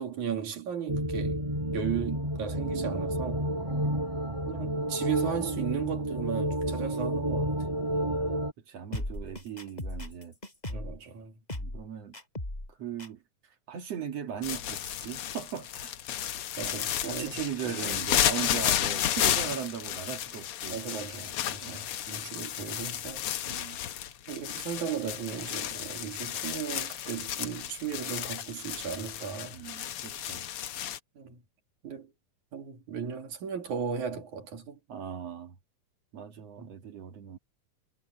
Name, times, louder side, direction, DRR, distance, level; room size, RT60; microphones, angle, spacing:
voice 1, 0.0-3.5 4.5-7.6 10.7-11.4 16.6-17.4 17.6-18.1 20.6-23.3 24.3-29.6 31.2-31.4 31.8-32.1 32.5-34.8 36.6-36.7, right 7 dB, 75° right, 4.1 m, -36 dB
sound 1, 0.9-8.5, right 1 dB, 10° right, 2.8 m, -30 dB
voice 2, 3.6-4.0 8.1-10.3 11.5-12.1 12.8-13.2 13.7-16.3 17.0-20.8 21.6-21.8 23.4-23.8 29.5-30.5 31.3-31.4 34.9-35.5 36.1-37.4, right 8 dB, 60° right, 2.7 m, -39 dB
sound 2, 8.9-11.0 11.5-11.9 12.1-12.7 13.0-13.1, left 1 dB, 10° left, 4.9 m, -37 dB
sound 3, 14.4-31.0, left 11 dB, 70° left, 1.4 m, -32 dB
omnidirectional pair, 3.5 m